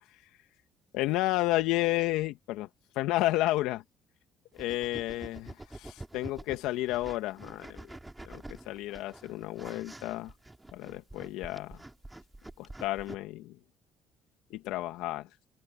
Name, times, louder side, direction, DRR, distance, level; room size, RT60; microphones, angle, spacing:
voice 1, 0.9-2.7 3.0-3.8 4.5-7.9 8.3-10.3 10.7-11.8 12.6-13.6 14.5-15.3, left 17 dB, 80° left, 2.4 m, -31 dB
sound 1, 4.5-13.2, right 2 dB, 10° right, 5.1 m, -47 dB
open air
supercardioid pair, 75°, 0 cm